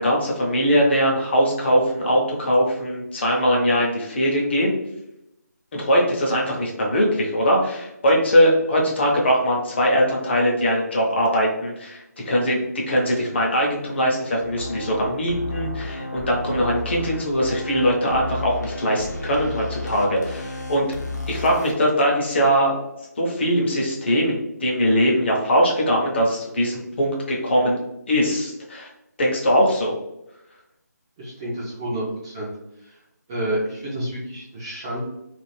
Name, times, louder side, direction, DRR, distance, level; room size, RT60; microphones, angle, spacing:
voice 1, 0.0-4.7 5.7-20.9 21.3-22.7 23.2-27.8 28.1-28.9 29.2-30.0, equal, 40° left, -2 dB, 0.7 m, -21 dB
sound 1, 14.4-21.7, left 2 dB, 75° left, 0.8 m, -33 dB
voice 2, 31.2-32.5 32.8-33.0 33.3-35.0, right 1 dB, 15° right, -7 dB, 0.4 m, -29 dB
2.5 x 2.3 x 3.2 m, 0.86 s
figure-of-eight pair, 165°, 10 cm